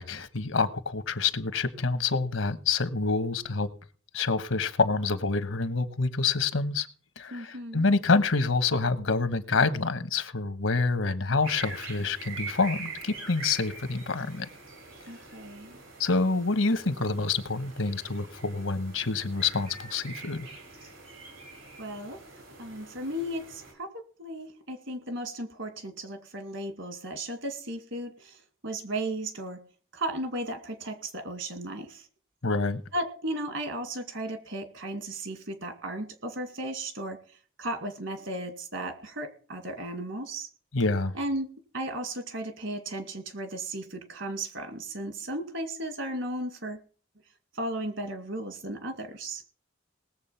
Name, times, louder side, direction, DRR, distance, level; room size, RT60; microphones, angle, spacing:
voice 1, 0.0-3.7 4.1-6.9 7.2-14.5 16.0-20.5 32.4-32.8 40.7-41.1, left 4 dB, 85° left, 11 dB, 1.2 m, -27 dB
voice 2, 7.3-7.9 15.1-15.8 21.8-22.2 22.6-23.9 24.2-29.6 29.9-32.1 32.9-37.2 37.6-40.5 41.1-41.5 41.7-46.8 47.5-49.4, right 1 dB, 70° right, 7 dB, 2.3 m, -35 dB
sound 1, 11.4-23.7, right 3 dB, 90° right, 4.6 m, -44 dB
19.0 x 7.4 x 5.7 m, 0.42 s
head